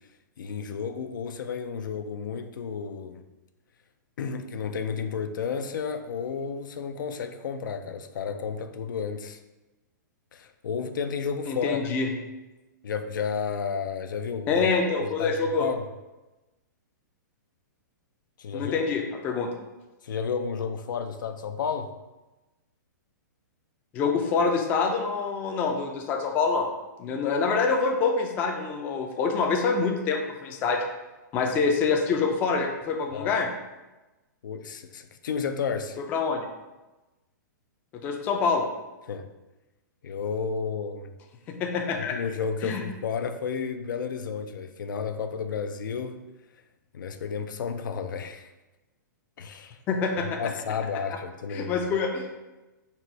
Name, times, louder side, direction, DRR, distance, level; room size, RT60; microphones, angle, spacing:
voice 1, 0.4-3.2 4.2-9.4 10.3-11.9 12.8-14.6 15.0-15.3 15.6-15.8 18.4-18.9 20.0-21.9 33.1-33.3 34.4-36.0 39.1-39.3 40.0-41.1 42.0-46.2 46.9-48.5 49.4-49.8 50.4-51.8, left 6 dB, 85° left, 8 dB, 0.4 m, -32 dB
voice 2, 11.5-12.1 14.5-15.7 18.5-19.5 23.9-26.7 27.0-30.8 31.3-33.5 36.1-36.5 38.0-38.7 41.6-42.2 42.6-42.8 49.9-50.4 51.5-52.3, left 4 dB, 15° left, 2 dB, 0.3 m, -26 dB
4.1 x 2.0 x 4.5 m, 1.1 s
hypercardioid pair, 160°, 10 cm